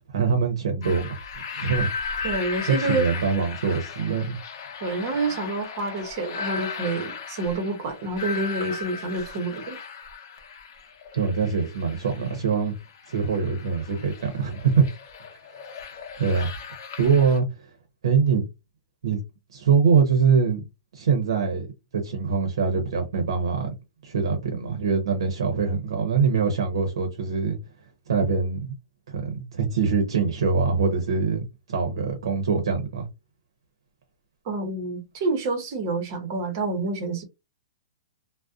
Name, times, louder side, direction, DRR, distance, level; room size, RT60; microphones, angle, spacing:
voice 1, 0.1-1.2 1.5-1.9 2.2-2.3 2.8-4.4 11.1-12.7 13.1-14.8 16.2-16.5 17.0-17.4 18.0-18.5 19.0-19.2 19.5-20.7 20.9-21.7 21.9-23.7 24.0-27.6 28.1-28.8 29.1-33.1, right 5 dB, 80° right, 0.8 m, -23 dB
sound 1, 0.8-17.4, left 5 dB, 50° left, 0.8 m, -36 dB
voice 2, 2.2-3.2 4.8-9.8 34.5-37.2, right 3 dB, 35° right, 0.7 m, -28 dB
2.6 x 2.0 x 2.4 m
hypercardioid pair, 170°, 3 cm